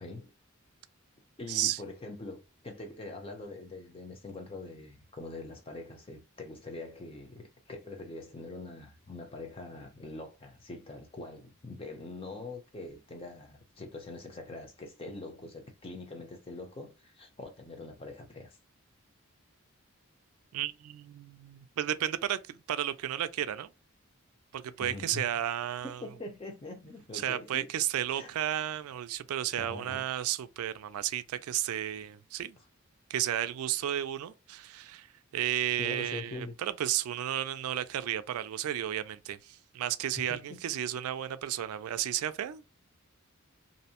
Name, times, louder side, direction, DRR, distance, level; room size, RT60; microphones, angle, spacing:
voice 1, 0.0-0.3 1.4-18.5 24.8-25.3 26.0-27.7 28.1-28.3 29.6-30.1 35.8-36.6 40.3-40.6, left 2 dB, 25° left, 0.6 m, -43 dB
voice 2, 1.5-1.8 20.5-23.7 24.5-26.0 27.1-32.6 33.1-35.1 35.3-42.8, right 11 dB, 85° right, 0.3 m, -33 dB
2.6 x 2.0 x 2.8 m
head